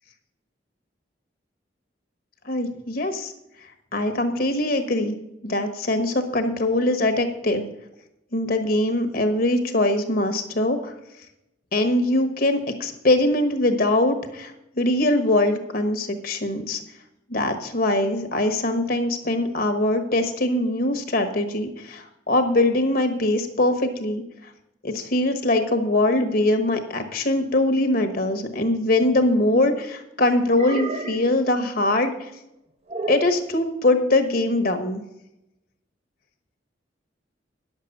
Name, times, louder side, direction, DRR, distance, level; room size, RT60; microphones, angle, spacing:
voice 1, 2.4-3.3 3.9-5.1 5.4-7.6 8.3-10.9 11.7-16.8 17.3-24.2 24.8-32.3 33.1-35.0, left 1 dB, 55° left, 7 dB, 1.3 m, -22 dB
sound 1, 29.0-29.8 30.5-31.4 32.9-33.4, right 3 dB, 35° right, 0.8 m, -32 dB
10.0 x 7.5 x 6.6 m, 0.88 s
head